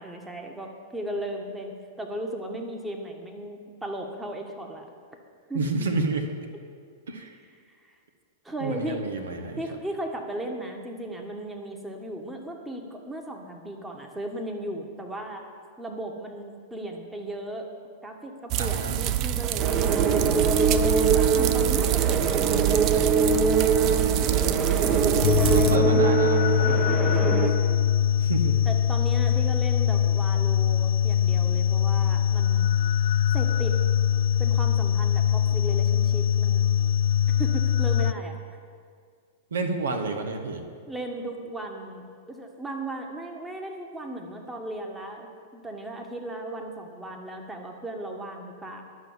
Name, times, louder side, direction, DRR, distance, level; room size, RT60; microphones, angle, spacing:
voice 1, 0.0-4.8 5.5-5.7 7.9-8.0 8.4-9.0 9.6-15.4 15.8-17.7 18.0-22.6 24.8-25.8 26.8-27.9 28.6-32.7 33.3-33.8 34.4-36.8 37.4-38.4 40.9-48.8, right 1 dB, 10° right, 2 dB, 1.5 m, -36 dB
voice 2, 5.5-6.3 7.1-7.4 8.6-9.6 18.6-19.1 23.6-24.6 25.0-25.2 25.4-26.8 28.2-28.6 39.5-40.6, right 3 dB, 75° right, 5 dB, 1.2 m, -30 dB
sound 1, 18.5-25.8, right 13 dB, 40° right, 0.5 m, -25 dB
sound 2, 19.6-27.5, right 5 dB, 25° right, 1.1 m, -23 dB
sound 3, 25.2-38.1, left 10 dB, 65° left, 0.3 m, -22 dB
11.5 x 6.2 x 7.3 m, 2.1 s
hypercardioid pair, 105°, 0 cm